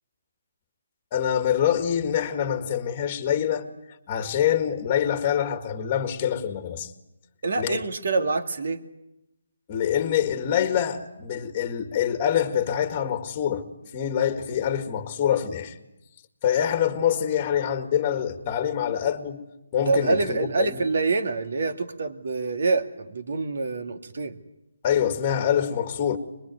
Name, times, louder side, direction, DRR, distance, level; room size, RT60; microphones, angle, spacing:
voice 1, 1.1-3.7 4.1-6.9 7.6-7.8 9.7-13.7 13.9-15.7 16.4-19.4 19.7-20.8 24.8-26.2, left 9 dB, 20° left, 1.8 m, -25 dB
voice 2, 7.4-8.8 19.9-24.4, right 3 dB, 60° right, 2.3 m, -26 dB
25.5 x 21.0 x 9.5 m
hypercardioid pair, 170°, 0 cm